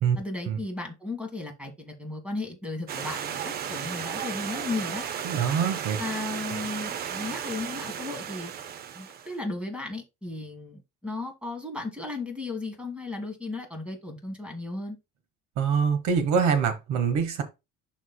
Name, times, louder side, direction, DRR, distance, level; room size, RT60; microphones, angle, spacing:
voice 1, 0.1-5.1 6.0-8.5 8.9-15.0, left 2 dB, 5° right, 1.6 m, -35 dB
Stream, 2.9-9.3, right 8 dB, 30° right, 0.5 m, -34 dB
voice 2, 5.2-6.0 15.6-17.4, right 6 dB, 65° right, 1.6 m, -24 dB
11.5 x 4.0 x 2.2 m
cardioid pair, 170°, 31 cm